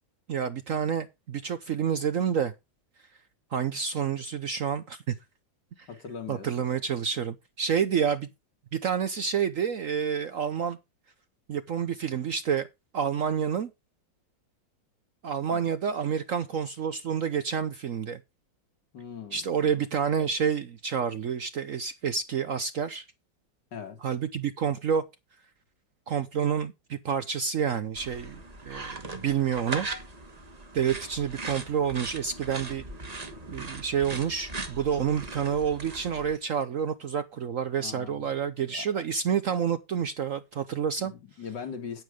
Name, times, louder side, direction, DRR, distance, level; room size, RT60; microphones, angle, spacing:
voice 1, 0.3-2.5 3.5-5.1 5.8-5.9 6.3-8.3 8.7-10.8 11.5-12.7 12.9-13.7 15.2-18.2 19.3-23.0 24.0-25.0 26.1-29.9 30.7-32.8 33.5-41.1, right 7 dB, 60° right, 0.9 m, -29 dB
voice 2, 5.9-6.7 15.5-15.7 18.9-19.4 23.7-24.0 37.8-38.3 38.7-38.9 41.0-42.0, left 6 dB, 65° left, 2.6 m, -40 dB
sound 1, 28.0-36.4, right 2 dB, 25° right, 1.3 m, -39 dB
9.4 x 9.2 x 4.9 m
omnidirectional pair, 2.0 m